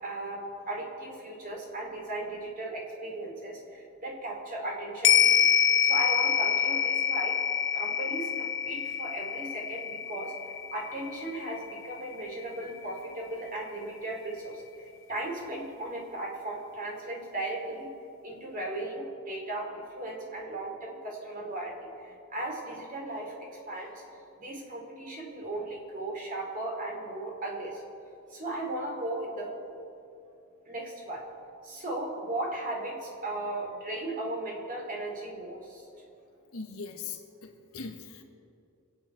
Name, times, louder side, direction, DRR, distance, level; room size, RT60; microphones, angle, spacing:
voice 1, 0.0-5.5 5.8-7.4 7.7-17.9 18.2-23.3 23.7-24.0 24.4-27.8 28.3-29.6 30.6-31.2 31.6-35.9, right 2 dB, 40° right, -1 dB, 3.0 m, -36 dB
sound 1, 5.0-13.6 14.0-14.1, left 8 dB, 60° left, 0.7 m, -27 dB
voice 2, 36.5-38.2, left 4 dB, 90° left, 3 dB, 1.7 m, -40 dB
25.0 x 9.0 x 4.6 m, 2.6 s
head